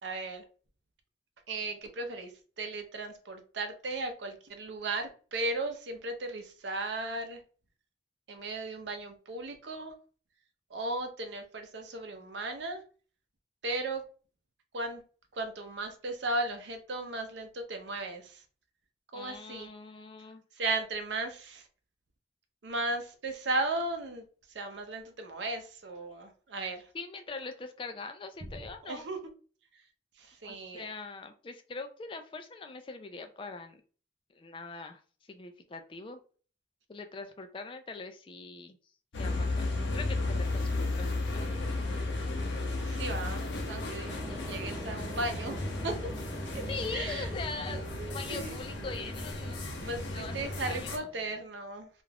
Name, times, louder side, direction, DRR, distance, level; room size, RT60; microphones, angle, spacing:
voice 1, 0.0-0.4 1.5-2.3 2.6-7.4 8.3-9.9 10.7-12.8 13.6-14.0 14.7-15.0 15.3-18.4 19.1-19.7 20.6-21.7 22.6-24.3 24.5-26.9 28.8-29.2 30.2-30.9 42.8-45.6 45.8-46.1 46.5-46.6 46.9-47.3 47.7-48.6 49.8-51.9, right 2 dB, 75° right, 5 dB, 0.6 m, -36 dB
voice 2, 19.1-20.4 26.9-29.1 30.4-33.8 34.3-35.0 35.3-36.2 36.9-38.8 39.2-39.7 39.9-40.7 41.0-41.6 44.3-44.5 46.7-49.7 50.1-50.9, left 4 dB, 25° left, 7 dB, 0.3 m, -42 dB
sound 1, 39.1-51.0, left 2 dB, 75° left, 0.6 m, -34 dB
sound 2, 44.0-51.4, right 1 dB, 10° right, 0.8 m, -47 dB
2.4 x 2.3 x 3.3 m, 0.40 s
head